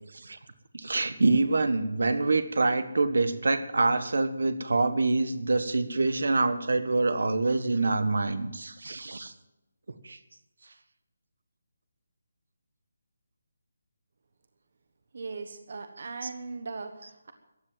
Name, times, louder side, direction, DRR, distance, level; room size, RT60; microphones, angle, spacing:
voice 1, 0.7-9.3 10.0-10.2 16.2-16.3, right 3 dB, 60° right, 11 dB, 1.4 m, -26 dB
voice 2, 15.1-17.3, right 4 dB, 40° right, 8 dB, 1.2 m, -39 dB
14.5 x 10.5 x 7.5 m, 0.93 s
hypercardioid pair, 180°, 0 cm